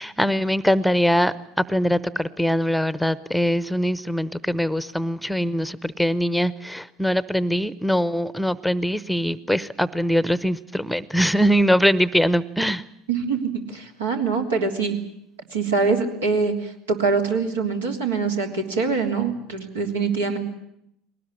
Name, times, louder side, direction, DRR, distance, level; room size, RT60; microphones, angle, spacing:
voice 1, 0.0-12.8, equal, ahead, 17 dB, 0.8 m, -22 dB
voice 2, 13.1-15.0 15.5-20.4, right 4 dB, 80° right, 2 dB, 3.3 m, -24 dB
21.5 x 19.0 x 10.0 m, 0.77 s
hypercardioid pair, 75°, 0 cm